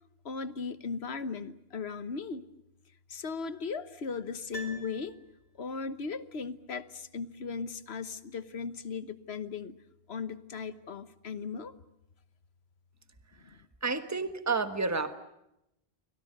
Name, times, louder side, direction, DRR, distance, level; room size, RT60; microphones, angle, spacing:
voice 1, 0.2-2.4 3.1-5.2 5.6-9.7 10.1-11.8 13.4-13.6, left 5 dB, 80° left, 14 dB, 1.4 m, -37 dB
Piano, 4.5-5.8 6.1-6.2, right 1 dB, 65° left, 3.8 m, -46 dB
voice 2, 13.8-15.1, right 4 dB, 15° right, 10 dB, 1.4 m, -30 dB
30.0 x 23.5 x 6.6 m, 0.83 s
omnidirectional pair, 1.1 m